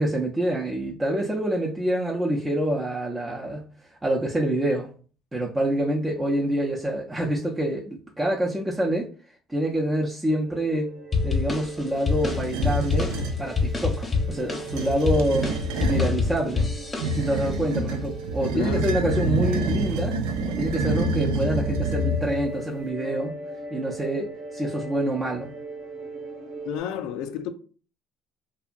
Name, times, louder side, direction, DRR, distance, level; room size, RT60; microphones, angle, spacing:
voice 1, 0.0-3.6 3.9-4.9 5.3-9.1 9.5-10.9 11.2-13.1 13.4-15.5 15.8-16.7 17.1-20.2 20.5-23.4 23.7-25.5, right 1 dB, 15° right, 0.5 m, -26 dB
sound 1, 10.3-26.8, right 2 dB, 70° right, 0.8 m, -40 dB
sound 2, 11.1-17.5, left 4 dB, 25° left, 0.7 m, -27 dB
sound 3, 12.1-13.4 14.6-16.2 17.0-22.5, right 1 dB, 90° right, 0.4 m, -27 dB
voice 2, 18.5-19.3 26.7-27.5, left 9 dB, 85° left, 0.3 m, -33 dB
2.7 x 2.2 x 2.5 m
cardioid pair, 105°, 0 cm